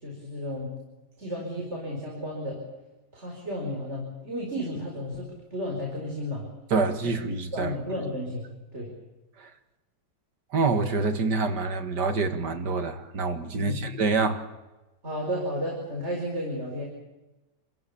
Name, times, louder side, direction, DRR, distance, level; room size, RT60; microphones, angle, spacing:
voice 1, 0.0-0.7 1.2-2.6 3.1-6.5 7.0-7.1 7.5-8.9 13.5-13.9 15.0-16.8, equal, 35° right, 5.3 m, -33 dB
voice 2, 6.7-8.0 9.4-9.5 10.5-14.4, right 4 dB, 65° right, 2.5 m, -26 dB
28.5 x 15.5 x 8.7 m
omnidirectional pair, 2.0 m